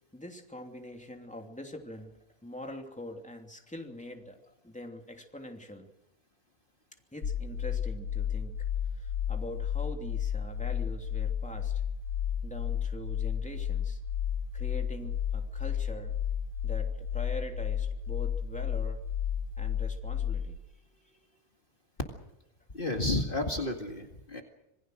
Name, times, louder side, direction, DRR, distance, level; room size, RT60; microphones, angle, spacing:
voice 1, 0.1-5.9 7.1-8.7 8.9-11.8 12.4-14.0 14.5-16.2 16.6-19.0 19.6-21.4, left 1 dB, 5° left, 3 dB, 2.9 m, -44 dB
sound 1, 7.2-20.6, left 8 dB, 75° left, 2.0 m, -32 dB
voice 2, 22.7-24.4, left 2 dB, 40° left, 3 dB, 2.3 m, -31 dB
27.0 x 20.5 x 6.5 m, 0.86 s
omnidirectional pair, 1.5 m